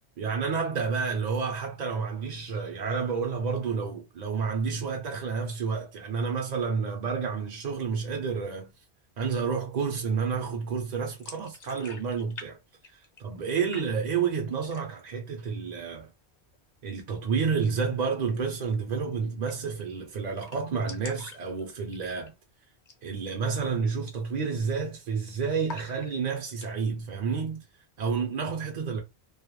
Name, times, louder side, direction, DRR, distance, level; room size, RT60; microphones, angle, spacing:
voice 1, 0.2-8.7 9.2-12.6 13.2-16.1 16.8-22.3 23.0-27.6 28.0-29.0, right 5 dB, 50° right, 0.5 m, -30 dB
sound 1, 11.1-12.5 12.7-13.5 13.7-14.3 14.6-15.1 15.5-15.6 15.9-16.6 18.2-18.4 18.7-18.8 19.0-19.1 19.5-19.8 20.1-20.2 20.4-22.4 22.8-23.1 23.4-23.5 24.0-24.3 24.6-25.2 25.7-26.7, left 4 dB, 50° left, 0.7 m, -46 dB
2.3 x 2.1 x 2.9 m
omnidirectional pair, 1.1 m